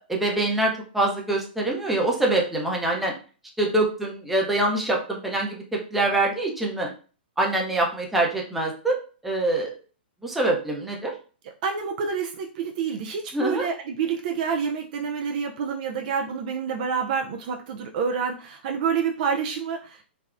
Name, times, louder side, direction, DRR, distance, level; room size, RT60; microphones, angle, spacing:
voice 1, 0.1-3.1 3.6-6.9 7.4-9.0 9.2-9.7 10.2-11.1 13.3-13.7, right 2 dB, 5° right, -2 dB, 0.6 m, -24 dB
voice 2, 11.6-20.0, right 6 dB, 50° right, 2 dB, 0.4 m, -28 dB
3.4 x 2.0 x 2.4 m, 0.37 s
hypercardioid pair, 135°, 6 cm